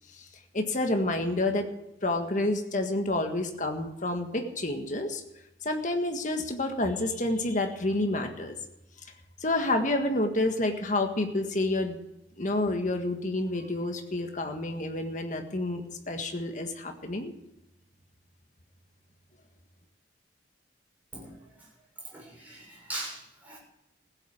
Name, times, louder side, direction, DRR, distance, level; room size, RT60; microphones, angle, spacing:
voice 1, 0.5-1.7 2.0-5.2 5.6-8.5 9.4-12.0 12.4-17.3, left 2 dB, 40° left, 5 dB, 1.7 m, -29 dB
voice 2, 22.1-23.6, right 2 dB, 10° right, -4 dB, 6.7 m, -40 dB
15.5 x 8.4 x 8.7 m, 0.90 s
head